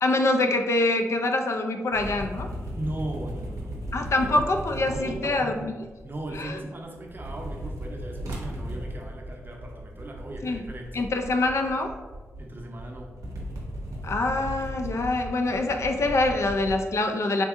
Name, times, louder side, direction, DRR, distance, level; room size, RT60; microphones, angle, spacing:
voice 1, 0.0-2.5 3.9-5.7 6.4-6.6 10.4-10.6 10.9-11.9 14.0-17.4, left 2 dB, 60° left, 5 dB, 0.3 m, -25 dB
sound 1, 1.9-6.6 6.9-16.7, equal, 90° right, 0.6 m, -37 dB
voice 2, 2.7-3.8 4.2-4.4 4.7-5.7 6.0-11.0 12.4-13.2, right 1 dB, 40° right, 1 dB, 0.6 m, -37 dB
3.5 x 2.6 x 2.4 m, 1.3 s
cardioid pair, 60°, 6 cm